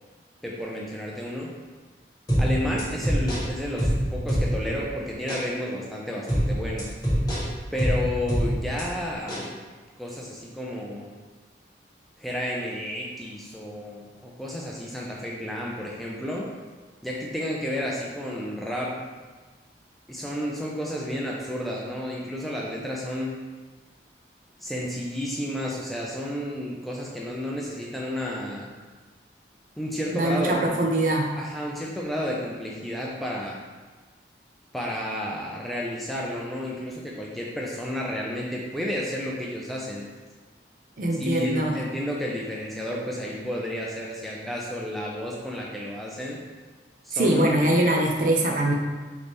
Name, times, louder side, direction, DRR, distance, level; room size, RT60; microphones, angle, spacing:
voice 1, 0.4-1.5 2.4-6.9 7.7-9.6 10.0-11.1 12.2-16.5 17.0-19.0 20.1-23.4 24.6-28.7 29.8-30.8 31.4-33.6 34.7-40.1 41.1-46.4 47.0-47.8, left 1 dB, ahead, -4 dB, 0.4 m, -31 dB
sound 1, 2.3-4.8 5.3-5.5 6.3-8.8 9.3-9.5, equal, 20° left, 1.2 m, -25 dB
voice 2, 30.1-31.3 41.0-41.8 47.1-48.7, right 1 dB, 45° right, 0 dB, 0.6 m, -22 dB
3.9 x 3.2 x 3.4 m, 1.3 s
head